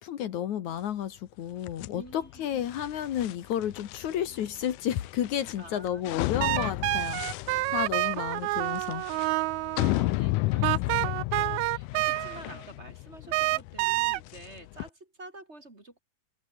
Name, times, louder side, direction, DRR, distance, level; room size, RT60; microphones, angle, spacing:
voice 1, 0.0-9.1, left 10 dB, 65° left, 2.6 m, -32 dB
sound 1, 1.6-14.9, left 20 dB, 85° left, 2.1 m, -33 dB
voice 2, 1.9-2.6 5.6-6.0 7.6-8.1 9.8-16.0, right 2 dB, 20° right, 2.9 m, -48 dB
sound 2, 6.4-10.1 10.6-12.6 13.3-14.2, right 20 dB, 80° right, 1.7 m, -28 dB
open air
omnidirectional pair, 3.7 m